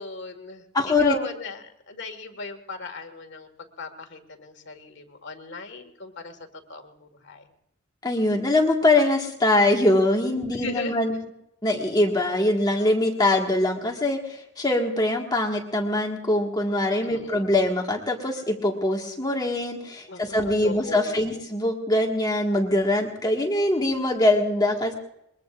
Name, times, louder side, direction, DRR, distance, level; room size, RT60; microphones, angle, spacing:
voice 1, 0.0-6.4 6.7-7.4 10.5-11.2 17.0-17.5 20.1-21.4, left 3 dB, 60° left, 5 dB, 1.8 m, -37 dB
voice 2, 0.7-1.2 8.0-11.1 11.6-24.9, left 1 dB, 20° left, 1 dB, 1.7 m, -23 dB
22.0 x 21.5 x 2.5 m, 0.80 s
head